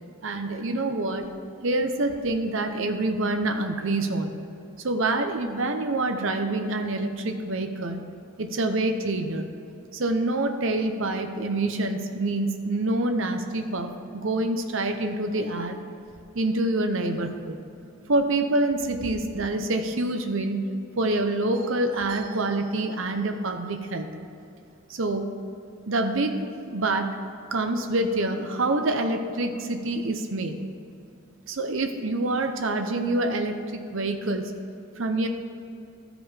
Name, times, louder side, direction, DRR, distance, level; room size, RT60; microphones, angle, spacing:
voice 1, 0.2-1.3 1.6-4.3 4.8-8.0 8.4-9.5 9.9-15.8 16.3-17.6 18.1-20.6 21.0-24.1 24.9-25.2 25.9-26.3 26.7-27.1 27.5-30.6 31.5-34.4 35.0-35.3, right 2 dB, 60° right, 6 dB, 0.8 m, -26 dB
13.0 x 5.1 x 5.0 m, 2.6 s
head